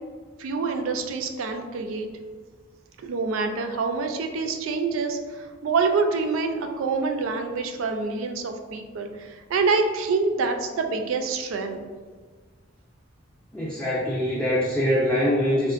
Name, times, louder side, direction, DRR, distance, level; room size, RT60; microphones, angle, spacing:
voice 1, 0.4-2.1 3.0-11.8, right 4 dB, 85° right, 5 dB, 0.4 m, -26 dB
voice 2, 13.5-15.7, equal, 5° left, -8 dB, 0.4 m, -23 dB
3.5 x 2.5 x 2.4 m, 1.5 s
head